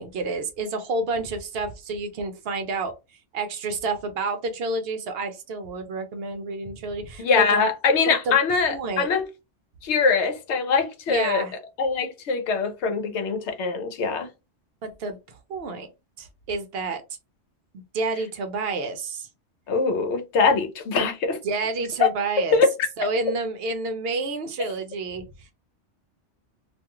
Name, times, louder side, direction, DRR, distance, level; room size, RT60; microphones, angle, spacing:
voice 1, 0.0-2.9 3.3-7.6 8.1-8.4 8.7-9.1 11.1-11.5 14.8-15.9 16.2-17.0 17.9-19.3 20.9-21.0 21.4-22.6 23.0-25.2, right 3 dB, 65° right, 0.7 m, -29 dB
voice 2, 7.2-9.2 9.8-11.4 11.8-14.3 19.7-21.4 22.0-22.1 22.5-22.7, left 5 dB, 70° left, 0.9 m, -22 dB
2.4 x 2.3 x 2.9 m
omnidirectional pair, 1.2 m